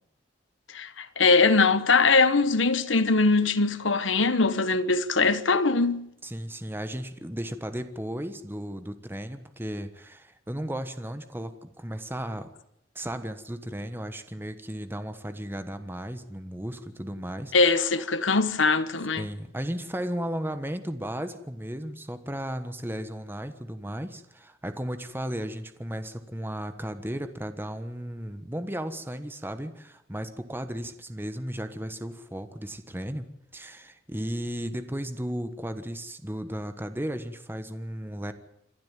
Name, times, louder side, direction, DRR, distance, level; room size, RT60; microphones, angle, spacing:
voice 1, 0.7-6.0 17.5-19.2, left 4 dB, 80° left, 1.3 m, -22 dB
voice 2, 6.2-12.5 12.9-18.0 19.2-38.3, equal, 10° right, 1.3 m, -35 dB
27.5 x 12.0 x 9.4 m
head